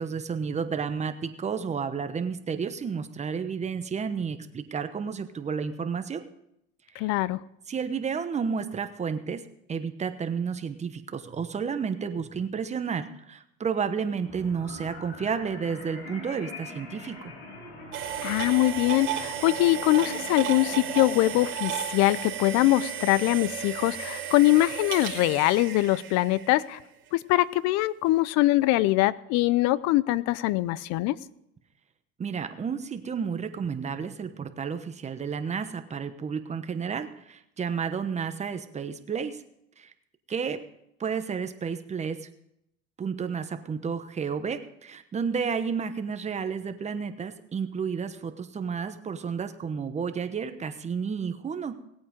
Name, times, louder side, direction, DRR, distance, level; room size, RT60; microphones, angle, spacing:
voice 1, 0.0-6.2 6.9-7.1 7.7-9.4 9.7-17.3 32.2-39.4 39.8-39.9 40.3-40.6 41.0-42.3 43.0-51.8, right 6 dB, 20° right, 9 dB, 1.0 m, -31 dB
voice 2, 7.0-7.4 18.2-26.8 27.1-31.2, left 17 dB, 60° left, 20 dB, 0.6 m, -23 dB
sound 1, 14.2-21.5, left 2 dB, 75° left, 6.8 m, -43 dB
sound 2, 17.9-26.8, right 10 dB, 40° right, 2.6 m, -34 dB
18.5 x 8.6 x 5.1 m, 0.79 s
supercardioid pair, 120°, 30 cm